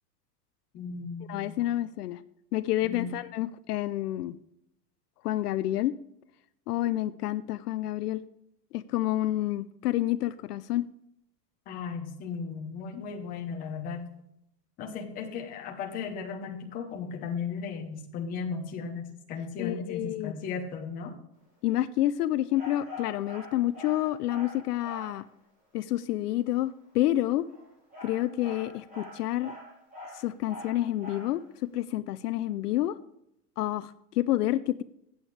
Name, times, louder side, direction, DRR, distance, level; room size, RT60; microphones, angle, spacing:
voice 1, 0.7-1.7 2.8-3.1 11.7-14.0 14.8-21.1, left 5 dB, 15° left, 2 dB, 1.0 m, -36 dB
voice 2, 1.3-2.2 2.5-4.4 5.2-5.9 6.7-8.2 8.7-10.9 19.6-20.3 21.6-25.2 25.7-27.5 28.0-29.5 30.1-33.0 33.6-34.8, left 14 dB, 65° left, 14 dB, 0.6 m, -29 dB
sound 1, 22.5-25.2 27.3-31.4, left 1 dB, 15° right, 4.0 m, -44 dB
15.0 x 8.9 x 3.3 m, 0.78 s
supercardioid pair, 180°, 49 cm